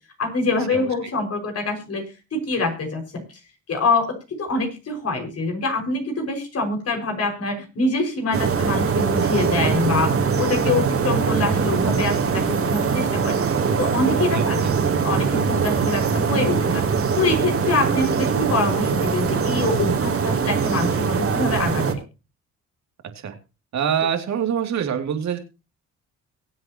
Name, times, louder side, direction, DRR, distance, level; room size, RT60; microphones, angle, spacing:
voice 1, 0.2-2.0 2.3-3.2 3.7-10.1 10.4-13.4 13.8-14.7 15.0-16.8 17.2-22.0, left 3 dB, 55° left, 3 dB, 5.9 m, -25 dB
sound 1, 8.3-21.9, right 6 dB, 50° right, 3.1 m, -22 dB
voice 2, 14.3-14.7 23.2-23.3 23.7-25.4, right 8 dB, 65° right, 5 dB, 2.9 m, -25 dB
23.5 x 7.8 x 3.0 m, 0.31 s
cardioid pair, 90°, 30 cm